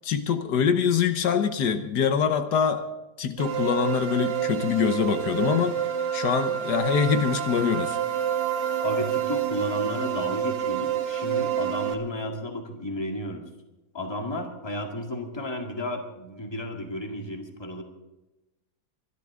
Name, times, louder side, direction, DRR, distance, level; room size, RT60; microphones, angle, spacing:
voice 1, 0.0-2.8 3.2-5.8 6.1-8.0, left 7 dB, 80° left, 9 dB, 1.6 m, -24 dB
sound 1, 3.4-11.9, right 10 dB, 85° right, 1.8 m, -28 dB
voice 2, 8.8-13.4 13.9-17.8, left 1 dB, 15° left, 2 dB, 2.0 m, -33 dB
24.0 x 12.0 x 3.7 m, 1.0 s
omnidirectional pair, 1.7 m